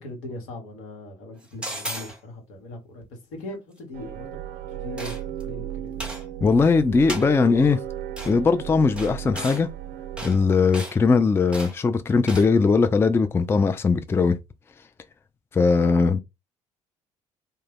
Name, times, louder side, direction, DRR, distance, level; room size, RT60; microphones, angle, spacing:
voice 1, 0.0-5.2 5.4-6.1, left 1 dB, 75° left, 1.0 m, -39 dB
sound 1, 1.6-2.2 5.0-5.4 6.0-6.3 7.1-7.3 8.2-8.3 9.0-9.6 10.2-10.4 10.7-11.0 11.5-11.8 12.3-12.5, equal, 5° right, 0.9 m, -34 dB
sound 2, 3.9-10.5, right 11 dB, 60° right, 0.4 m, -35 dB
voice 2, 6.4-7.8 8.2-9.7 10.2-14.4 15.5-16.2, left 4 dB, 15° left, 0.3 m, -20 dB
2.2 x 2.0 x 3.4 m
hypercardioid pair, 55°, 17 cm